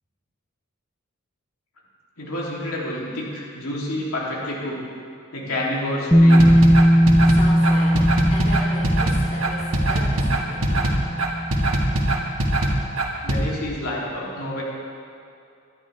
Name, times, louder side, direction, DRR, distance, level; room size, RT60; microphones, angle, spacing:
voice 1, 2.2-4.8 5.3-6.5 13.2-14.6, left 1 dB, 90° left, -5 dB, 3.2 m, -28 dB
Bass guitar, 6.1-12.2, equal, 10° left, 0.7 m, -18 dB
sound 1, 6.3-13.4, right 1 dB, 75° right, 1.8 m, -22 dB
voice 2, 7.3-8.0 8.3-10.9, left 1 dB, 30° left, -6 dB, 3.0 m, -35 dB
23.5 x 11.5 x 3.5 m, 2.5 s
head